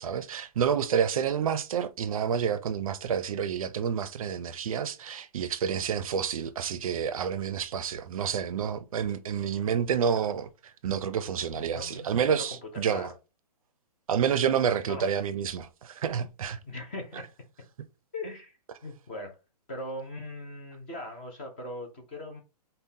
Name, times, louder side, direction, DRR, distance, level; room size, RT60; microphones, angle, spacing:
voice 1, 0.0-13.1 14.1-16.6, right 7 dB, 55° right, 0.4 m, -29 dB
voice 2, 11.6-12.1 12.3-13.1 14.9-15.1 16.6-17.3 18.1-19.4 19.7-22.4, left 1 dB, 15° left, 0.3 m, -40 dB
5.3 x 2.1 x 2.6 m
hypercardioid pair, 160°, 21 cm